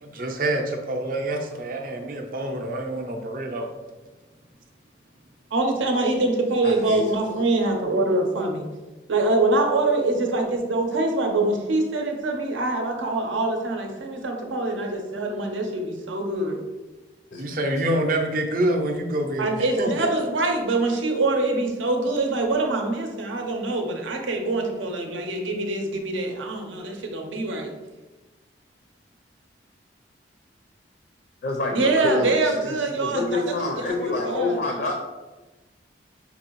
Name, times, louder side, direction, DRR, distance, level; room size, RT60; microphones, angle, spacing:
voice 1, 0.0-3.7 17.4-20.1, right 1 dB, 45° right, 3 dB, 0.5 m, -26 dB
voice 2, 5.5-8.6 9.1-16.6 19.4-27.7 31.7-33.4 33.9-34.6, right 2 dB, 85° right, 3 dB, 0.7 m, -24 dB
voice 3, 6.6-7.0 7.3-7.5 17.3-17.4 31.4-34.9, left 3 dB, 55° left, 1 dB, 0.5 m, -28 dB
5.3 x 2.7 x 2.9 m, 1.2 s
head